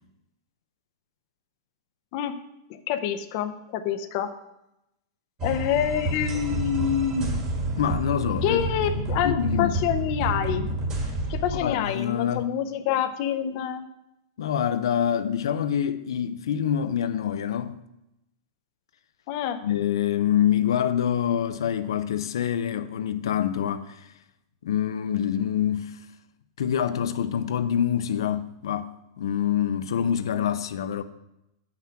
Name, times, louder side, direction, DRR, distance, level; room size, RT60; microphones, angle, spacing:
voice 1, 2.7-4.3 5.4-7.5 8.4-10.8 11.3-13.8 19.3-19.6, left 9 dB, 40° left, 0.6 m, -27 dB
sound 1, 5.4-11.6, right 1 dB, 30° right, 1.7 m, -29 dB
voice 2, 7.8-8.6 9.2-9.7 11.5-12.5 14.4-17.8 19.6-24.1 24.6-26.0 26.6-31.0, left 9 dB, 85° left, 0.5 m, -26 dB
7.4 x 5.9 x 5.7 m
supercardioid pair, 160°, 2 cm